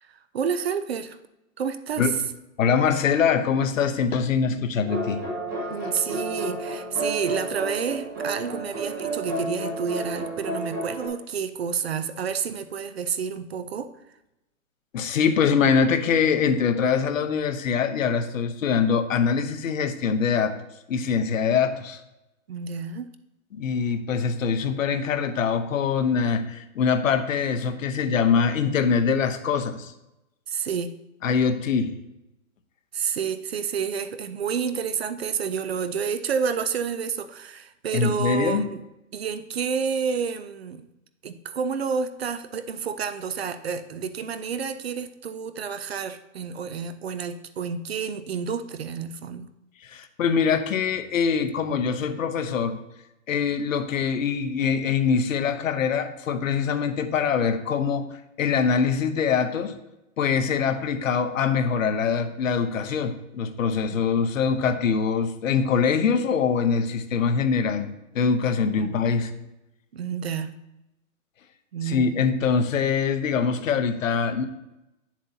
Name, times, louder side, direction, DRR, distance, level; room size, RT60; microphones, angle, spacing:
voice 1, 0.3-1.2 1.6-2.1 5.7-13.9 22.5-23.1 30.5-30.9 32.9-38.8 39.1-40.9 41.2-49.5 68.8-69.0 69.9-70.6 71.7-72.1, right 6 dB, 50° right, 11 dB, 0.5 m, -29 dB
voice 2, 2.6-5.2 14.9-20.5 20.9-22.0 23.5-29.9 31.2-31.9 37.9-38.7 49.8-52.8 53.3-58.1 58.4-59.7 60.2-69.3 71.9-74.5, left 6 dB, 70° left, 8 dB, 0.9 m, -23 dB
sound 1, 4.8-11.1, right 1 dB, 15° right, 0.7 m, -31 dB
8.4 x 7.2 x 2.7 m, 0.93 s
hypercardioid pair, 170°, 41 cm